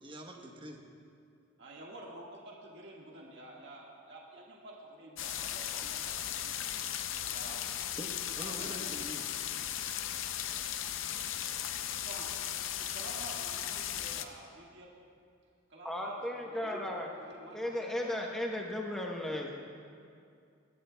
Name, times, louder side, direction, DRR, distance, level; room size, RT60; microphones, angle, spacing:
voice 1, 0.0-0.8 5.3-5.8 8.0-10.6 11.5-11.8, right 1 dB, 25° right, 2 dB, 1.0 m, -47 dB
voice 2, 1.6-6.8 7.3-7.7 8.4-8.8 12.0-14.9 15.7-17.8, right 1 dB, 55° right, -3 dB, 1.7 m, -50 dB
sound 1, 5.2-14.3, left 10 dB, 65° left, 0.5 m, -37 dB
voice 3, 15.8-17.1 17.5-19.5, left 1 dB, ahead, -1 dB, 0.9 m, -35 dB
20.0 x 14.0 x 2.2 m, 2.4 s
head